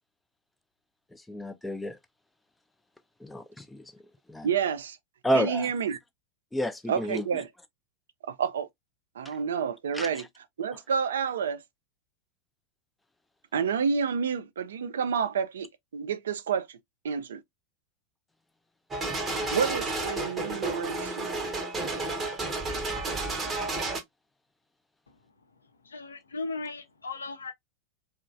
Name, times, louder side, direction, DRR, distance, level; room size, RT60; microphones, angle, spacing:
voice 1, 1.1-2.0 3.2-3.8 4.3-4.5 5.2-5.7 6.5-7.2 9.9-10.1, equal, 5° left, 0.4 m, -30 dB
voice 2, 4.4-5.0 5.3-6.0 6.9-7.5 8.2-8.7 9.2-10.3 10.6-11.6 13.5-16.8 17.0-17.4 19.5-21.3, right 6 dB, 65° right, 0.3 m, -29 dB
sound 1, 18.9-24.0, right 2 dB, 20° right, 0.7 m, -31 dB
voice 3, 25.8-27.5, left 3 dB, 70° left, 0.5 m, -37 dB
2.9 x 2.1 x 2.4 m
figure-of-eight pair, 90°, 0 cm